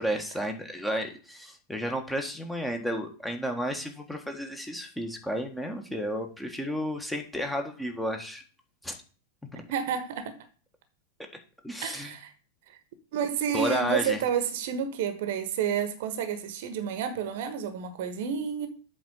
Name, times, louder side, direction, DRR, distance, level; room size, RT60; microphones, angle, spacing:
voice 1, 0.0-8.4 8.8-9.0 9.4-9.6 11.6-12.1 13.5-14.2, equal, 5° left, 1.5 m, -32 dB
voice 2, 9.7-10.4 11.8-12.3 12.7-12.8 13.1-18.7, right 7 dB, 50° right, 1.2 m, -30 dB
8.0 x 4.2 x 6.4 m
figure-of-eight pair, 90°, 0 cm